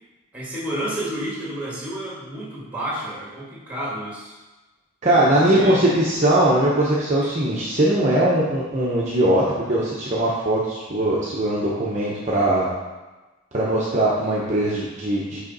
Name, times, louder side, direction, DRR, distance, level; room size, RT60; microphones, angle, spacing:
voice 1, 0.3-4.3 5.3-6.1 14.6-14.7, right 1 dB, 5° right, -7 dB, 1.9 m, -31 dB
voice 2, 5.0-12.7 13.5-15.4, right 1 dB, 35° right, -6 dB, 0.9 m, -20 dB
6.3 x 4.9 x 4.0 m, 1.2 s
head